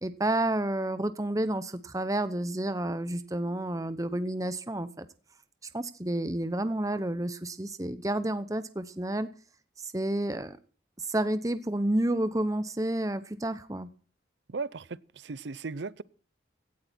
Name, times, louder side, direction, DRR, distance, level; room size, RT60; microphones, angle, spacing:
voice 1, 0.0-5.1 5.7-9.3 9.8-10.6 11.0-13.9, right 1 dB, 20° right, 0.9 m, -30 dB
voice 2, 14.5-16.0, right 4 dB, 75° right, 0.6 m, -37 dB
17.0 x 12.5 x 4.4 m
head